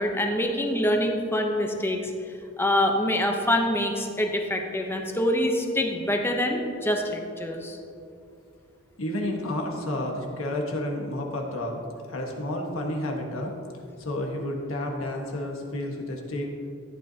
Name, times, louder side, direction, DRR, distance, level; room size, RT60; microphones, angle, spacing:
voice 1, 0.0-2.1 2.6-7.8, left 1 dB, 10° left, 3 dB, 0.9 m, -25 dB
voice 2, 9.0-11.8 12.1-13.5 14.0-16.5, left 1 dB, 85° left, 1 dB, 1.5 m, -30 dB
14.0 x 9.0 x 2.9 m, 2.5 s
head